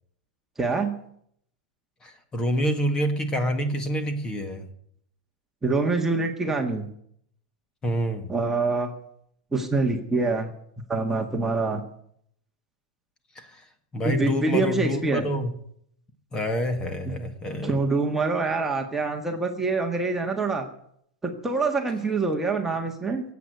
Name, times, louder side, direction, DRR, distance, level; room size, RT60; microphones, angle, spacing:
voice 1, 0.6-1.0 5.6-6.9 8.3-8.9 9.5-10.5 10.9-11.8 14.0-15.3 17.1-17.2 17.6-20.7 21.2-23.2, right 3 dB, 10° right, 2 dB, 1.6 m, -25 dB
voice 2, 2.0-4.7 7.8-8.3 13.4-13.5 13.9-15.5 16.3-17.8, equal, 20° left, 9 dB, 1.9 m, -27 dB
16.5 x 8.4 x 9.2 m, 0.68 s
supercardioid pair, 150°, 4 cm